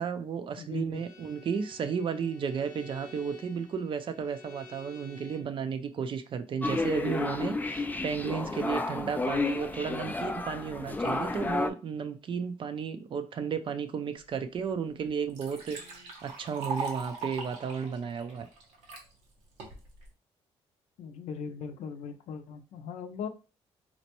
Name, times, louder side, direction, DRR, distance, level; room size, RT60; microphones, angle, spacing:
voice 1, 0.0-18.5, right 6 dB, 50° right, 9 dB, 0.5 m, -33 dB
voice 2, 0.6-1.0 21.0-23.3, left 6 dB, 80° left, 8 dB, 0.5 m, -39 dB
Bowed string instrument, 0.9-5.6, left 2 dB, 30° left, 0.8 m, -51 dB
sound 1, 6.6-11.7, left 3 dB, 15° left, 0.4 m, -31 dB
Liquid, 14.5-14.6 15.0-19.0 19.6-20.1, right 4 dB, 90° right, 0.9 m, -40 dB
4.1 x 2.1 x 2.9 m, 0.32 s
cardioid pair, 90°, 11 cm